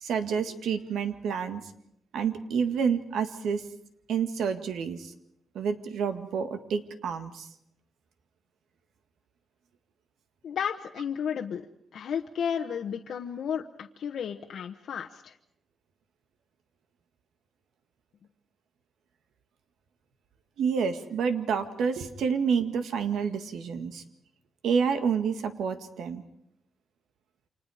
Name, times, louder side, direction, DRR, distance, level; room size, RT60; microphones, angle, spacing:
voice 1, 0.0-1.6 2.1-3.6 4.1-5.1 5.5-7.5 20.6-24.0 24.6-26.2, right 6 dB, 90° right, 9 dB, 1.9 m, -28 dB
voice 2, 10.4-11.7 11.9-15.4, left 8 dB, 65° left, 2 dB, 1.1 m, -33 dB
29.5 x 26.0 x 5.0 m, 0.75 s
wide cardioid pair, 150°, 0 cm